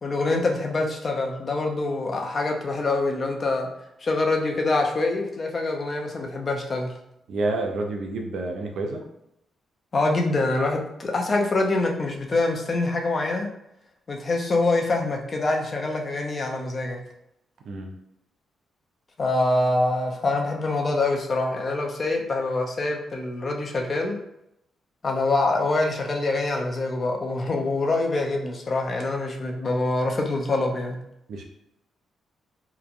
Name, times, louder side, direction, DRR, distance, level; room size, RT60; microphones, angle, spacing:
voice 1, 0.0-3.7 4.0-6.9 9.9-13.5 14.1-17.0 19.2-24.2 25.0-31.0, left 2 dB, 40° left, 2 dB, 0.5 m, -25 dB
voice 2, 7.3-9.0 17.6-17.9 31.3-31.4, right 2 dB, 70° right, 2 dB, 0.5 m, -29 dB
2.9 x 2.2 x 2.4 m, 0.82 s
cardioid pair, 95°, 0 cm